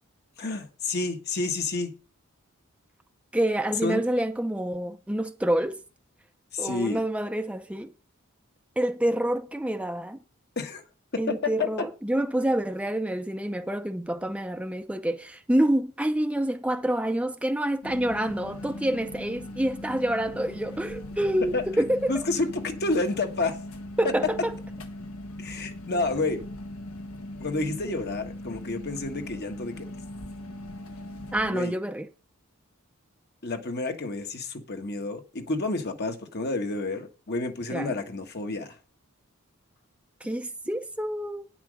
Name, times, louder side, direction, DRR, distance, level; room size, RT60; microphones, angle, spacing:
voice 1, 0.4-1.9 3.8-4.0 6.5-7.0 10.6-10.8 11.1-11.9 21.5-21.6 22.1-23.6 24.0-24.3 25.4-26.4 27.4-29.9 31.5-31.7 33.4-38.8, left 3 dB, 50° left, 1.4 m, -29 dB
voice 2, 3.3-5.8 6.6-7.9 8.8-10.2 11.2-22.2 24.0-24.5 31.3-32.1 37.7-37.9 40.2-41.5, right 1 dB, 5° right, 0.6 m, -27 dB
sound 1, 17.8-31.5, left 1 dB, 80° left, 1.4 m, -40 dB
9.7 x 5.8 x 6.3 m
head